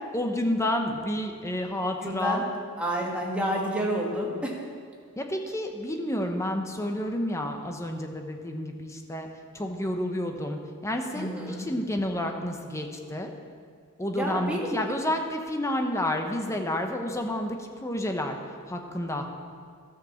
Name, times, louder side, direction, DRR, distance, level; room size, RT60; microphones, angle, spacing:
voice 1, 0.1-2.4 5.2-9.3 9.5-13.3 14.0-18.4 18.7-19.3, left 1 dB, 15° left, 4 dB, 0.9 m, -30 dB
voice 2, 1.8-2.4 2.8-4.6 11.1-11.7 14.1-14.8, equal, 5° right, -3 dB, 1.8 m, -29 dB
13.0 x 6.4 x 7.0 m, 2.1 s
head